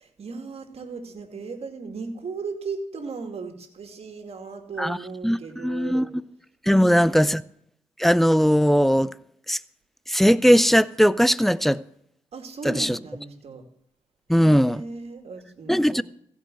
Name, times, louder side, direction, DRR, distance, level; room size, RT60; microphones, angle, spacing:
voice 1, 0.0-6.1 6.7-7.3 12.3-13.6 14.3-16.0, right 4 dB, 60° right, 2.4 m, -36 dB
voice 2, 5.6-6.1 6.7-7.4 8.0-9.1 9.5-9.6 10.1-11.8 12.6-13.0 14.3-14.8 15.7-16.0, equal, ahead, 0.5 m, -19 dB
16.0 x 5.5 x 7.6 m
cardioid pair, 65°, 12 cm